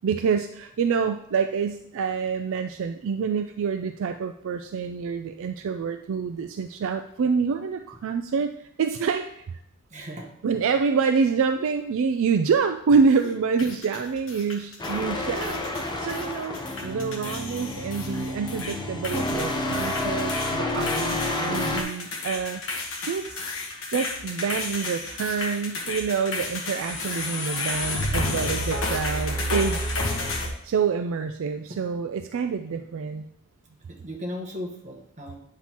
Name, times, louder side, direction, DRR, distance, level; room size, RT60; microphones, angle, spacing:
voice 1, 0.0-8.5 8.8-9.6 10.4-22.6 23.0-23.5 23.9-29.8 30.6-33.2, right 5 dB, 65° right, 7 dB, 0.4 m, -27 dB
voice 2, 9.9-10.3 13.2-13.4 13.6-13.7 31.7-31.8 33.9-35.4, equal, 35° right, 1 dB, 1.3 m, -37 dB
sound 1, 13.6-15.0 15.3-16.2 16.5-18.7 19.0-30.5, left 2 dB, 65° left, 1.3 m, -31 dB
sound 2, 14.8-21.8, left 1 dB, 20° left, 0.8 m, -29 dB
8.7 x 5.7 x 2.9 m, 0.76 s
head